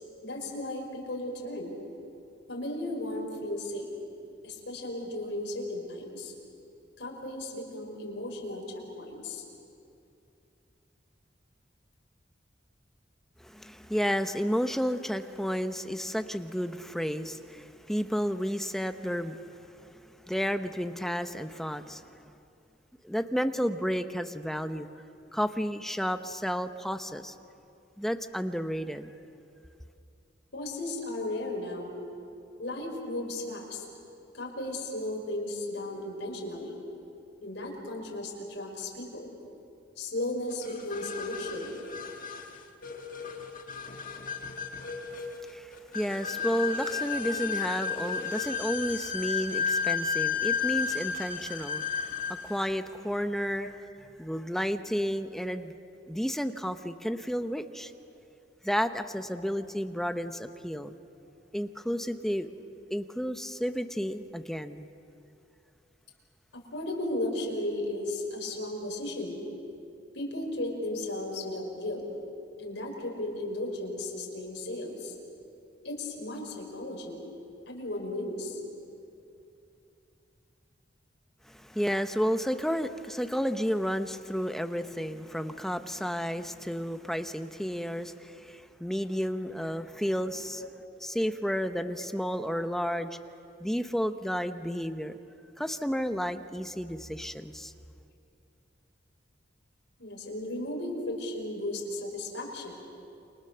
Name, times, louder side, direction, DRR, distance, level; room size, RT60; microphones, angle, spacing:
voice 1, 0.2-1.8 2.5-3.9 4.4-6.3 7.0-9.4 30.5-32.0 32.6-33.8 34.3-36.8 37.4-39.3 40.0-41.8 53.6-53.7 55.5-55.7 57.8-57.9 66.5-69.5 70.1-72.1 72.6-75.2 75.8-77.2 77.7-78.6 90.6-90.7 100.0-102.7, left 1 dB, 70° left, 0 dB, 5.6 m, -35 dB
voice 2, 13.4-22.0 23.0-24.9 25.3-27.3 28.0-29.1 45.4-53.7 54.0-55.7 56.1-57.9 58.6-61.0 61.5-62.5 62.9-64.9 81.5-90.6 91.0-93.1 93.6-95.2 95.6-97.7, equal, ahead, 8 dB, 0.8 m, -32 dB
sound 1, 40.6-52.6, left 6 dB, 45° left, 1.7 m, -33 dB
29.0 x 25.5 x 6.9 m, 2.6 s
head